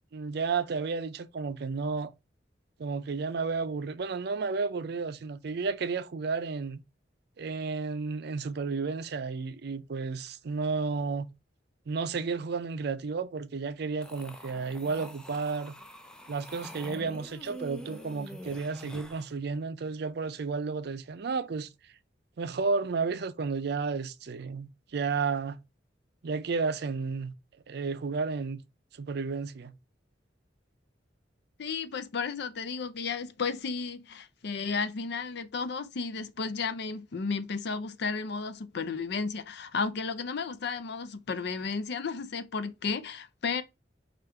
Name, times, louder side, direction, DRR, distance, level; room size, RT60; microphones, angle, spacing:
voice 1, 0.1-2.1 2.8-6.8 7.4-11.3 11.9-15.8 16.3-21.7 22.4-25.6 26.2-27.3 27.7-28.6 28.9-29.8, right 4 dB, 65° right, 0.5 m, -32 dB
sound 1, 14.0-19.3, equal, 5° left, 0.4 m, -45 dB
voice 2, 31.6-43.6, left 5 dB, 65° left, 0.5 m, -33 dB
4.9 x 2.5 x 4.4 m
head